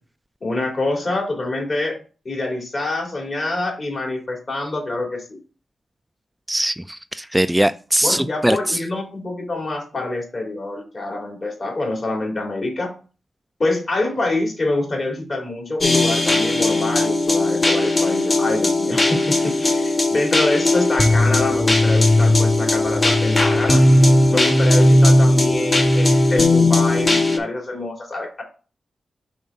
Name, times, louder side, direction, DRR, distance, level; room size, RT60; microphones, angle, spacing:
voice 1, 0.4-2.0 2.2-5.3 8.0-12.9 13.6-23.8 24.3-28.4, left 2 dB, 50° left, 1 dB, 2.6 m, -25 dB
voice 2, 6.5-8.8, right 1 dB, 10° right, 12 dB, 0.3 m, -21 dB
sound 1, 15.8-27.4, left 1 dB, 35° left, 1.4 m, -17 dB
5.2 x 3.5 x 5.5 m, 0.36 s
cardioid pair, 45°, 0 cm